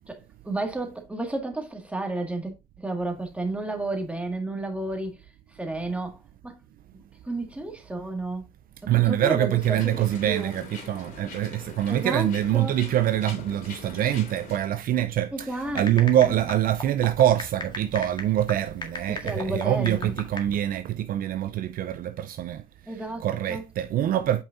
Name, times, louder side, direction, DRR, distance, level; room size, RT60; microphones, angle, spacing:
voice 1, 0.1-5.2 5.5-6.6 7.3-8.5 8.8-10.6 11.9-12.8 15.3-15.8 16.2-16.3 19.1-20.1 22.9-23.6, right 2 dB, 5° right, 1.9 m, -32 dB
voice 2, 8.8-24.4, right 12 dB, 60° right, 0.6 m, -25 dB
sound 1, 9.6-14.6, left 4 dB, 55° left, 3.1 m, -43 dB
sound 2, 15.5-20.4, left 2 dB, 25° left, 1.9 m, -38 dB
8.2 x 5.4 x 2.6 m
cardioid pair, 110°, 17 cm